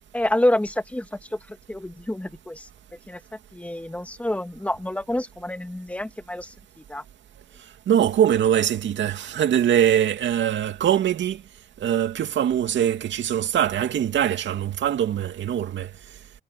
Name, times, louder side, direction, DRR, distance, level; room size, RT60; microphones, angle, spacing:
voice 1, 0.1-2.7 3.1-3.2 3.5-6.5 6.9-7.0, left 1 dB, 5° left, 2.2 m, -27 dB
voice 2, 7.9-11.4 11.8-15.9, right 10 dB, 65° right, 2.5 m, -22 dB
cardioid pair, 90°, 20 cm